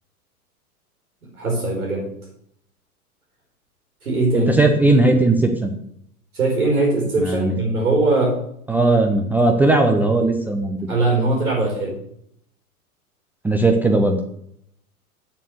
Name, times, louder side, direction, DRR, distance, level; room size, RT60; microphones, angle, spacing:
voice 1, 1.4-2.0 4.0-4.6 6.3-8.4 10.9-11.9, right 2 dB, 70° right, -2 dB, 4.5 m, -20 dB
voice 2, 4.3-5.7 7.1-7.5 8.7-10.8 13.4-14.2, right 2 dB, 5° right, 3 dB, 0.4 m, -17 dB
7.1 x 6.7 x 7.0 m, 0.71 s
figure-of-eight pair, 90°, 44 cm